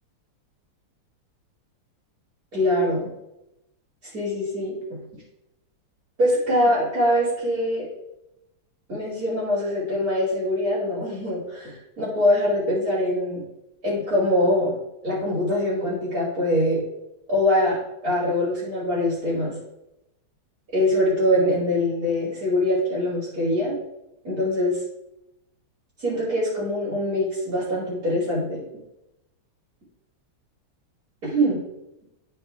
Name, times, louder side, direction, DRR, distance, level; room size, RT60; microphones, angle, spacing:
voice 1, 2.5-3.1 4.1-5.0 6.2-7.9 8.9-13.4 13.8-14.8 15.0-16.8 17.3-17.8 18.0-19.5 20.7-23.8 24.2-24.8 26.0-28.6 31.2-31.6, left 1 dB, 40° right, -9 dB, 3.1 m, -23 dB
12.5 x 4.3 x 3.5 m, 0.89 s
omnidirectional pair, 2.4 m